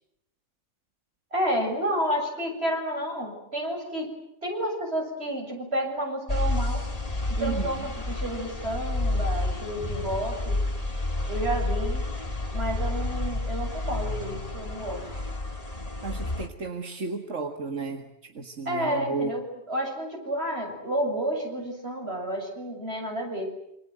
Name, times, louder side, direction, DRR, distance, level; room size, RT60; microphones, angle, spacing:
voice 1, 1.3-4.1 4.4-6.8 7.3-10.6 11.3-12.1 12.5-15.0 18.7-23.5, right 1 dB, 60° right, 2 dB, 7.6 m, -30 dB
sound 1, 6.3-16.5, left 2 dB, 30° left, 2.4 m, -30 dB
voice 2, 7.4-7.8 16.0-19.3, right 4 dB, 90° right, 6 dB, 2.2 m, -33 dB
27.5 x 26.5 x 7.8 m, 0.78 s
omnidirectional pair, 1.2 m